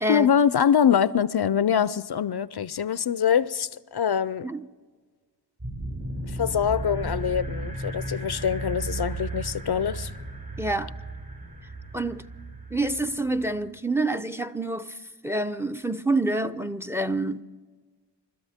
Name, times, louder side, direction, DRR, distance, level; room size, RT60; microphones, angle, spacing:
voice 1, 0.1-4.5 6.3-10.1, left 8 dB, 60° left, 0.5 m, -24 dB
sound 1, 5.6-13.7, right 2 dB, 60° right, 6.0 m, -35 dB
voice 2, 10.6-10.9 11.9-12.2 12.7-17.4, right 2 dB, 5° right, 0.6 m, -27 dB
29.0 x 13.0 x 3.6 m
cardioid pair, 40°, 44 cm